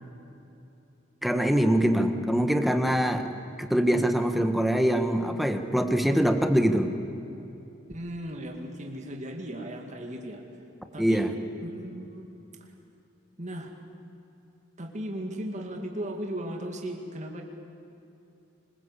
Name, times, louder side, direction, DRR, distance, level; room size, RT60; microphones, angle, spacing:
voice 1, 1.2-3.3 3.6-6.9 11.0-11.3, equal, ahead, 6 dB, 1.4 m, -23 dB
voice 2, 7.9-10.4 10.9-11.3 11.6-12.3 12.6-12.7 13.4-13.7 14.8-17.4, right 1 dB, 35° right, 2 dB, 2.2 m, -36 dB
25.5 x 21.5 x 8.4 m, 2.9 s
head